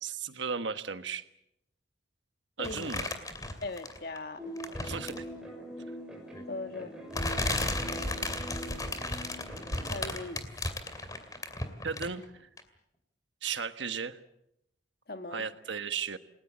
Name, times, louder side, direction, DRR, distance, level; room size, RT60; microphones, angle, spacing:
voice 1, 0.0-1.2 2.6-3.1 4.8-5.2 8.0-8.3 11.8-12.5 13.4-14.2 15.3-16.2, right 6 dB, 70° right, 10 dB, 1.3 m, -35 dB
voice 2, 2.6-2.9 3.6-4.4 6.5-6.9 9.9-10.4 15.1-15.4, left 2 dB, 50° left, 8 dB, 1.7 m, -39 dB
sound 1, 2.6-4.2 4.6-5.3 6.3-6.4 7.1-12.2 12.6-12.7, left 2 dB, 20° left, 2.5 m, -34 dB
sound 2, 4.4-9.8, equal, 5° right, 6.2 m, -43 dB
29.0 x 20.0 x 7.5 m, 0.81 s
head